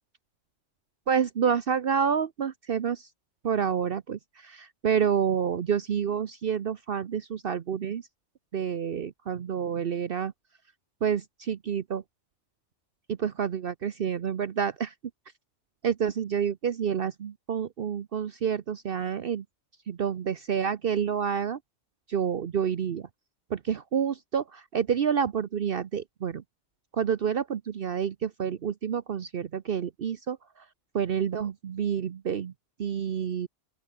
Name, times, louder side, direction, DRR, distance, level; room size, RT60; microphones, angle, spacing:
voice 1, 1.1-3.1 3.4-8.0 8.5-10.3 11.0-12.0 13.2-14.9 15.8-19.4 19.9-21.6 22.1-23.1 23.5-26.4 27.0-30.4 30.9-32.5 32.8-33.5, right 7 dB, 55° right, 0.9 m, -28 dB
open air
omnidirectional pair, 1.2 m